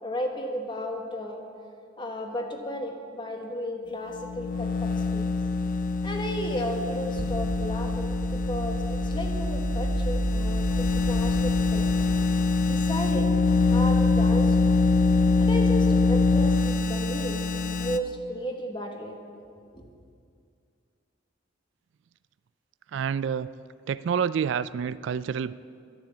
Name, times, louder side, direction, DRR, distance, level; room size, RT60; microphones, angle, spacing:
voice 1, 0.0-1.4 2.0-5.3 6.0-11.9 12.7-14.7 15.4-17.5 17.8-19.2 19.6-19.8, equal, 25° left, 3 dB, 1.3 m, -34 dB
sound 1, 4.1-18.0, left 3 dB, 45° left, 0.5 m, -24 dB
sound 2, 7.1-12.2, right 1 dB, 85° left, 4.1 m, -31 dB
voice 2, 22.9-23.5 23.9-25.5, right 7 dB, 70° right, 16 dB, 0.3 m, -28 dB
11.5 x 11.0 x 7.2 m, 2.3 s
head